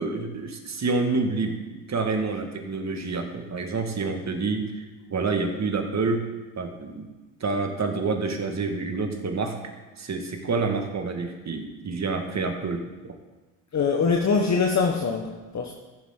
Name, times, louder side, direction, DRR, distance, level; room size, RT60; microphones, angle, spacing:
voice 1, 0.0-4.8 5.1-6.3 6.6-7.1 7.4-9.6 10.0-13.1, right 4 dB, 35° right, 4 dB, 1.8 m, -28 dB
voice 2, 13.7-15.7, left 5 dB, 35° left, 2 dB, 1.1 m, -23 dB
15.0 x 7.3 x 3.8 m, 1.2 s
supercardioid pair, 80°, 48 cm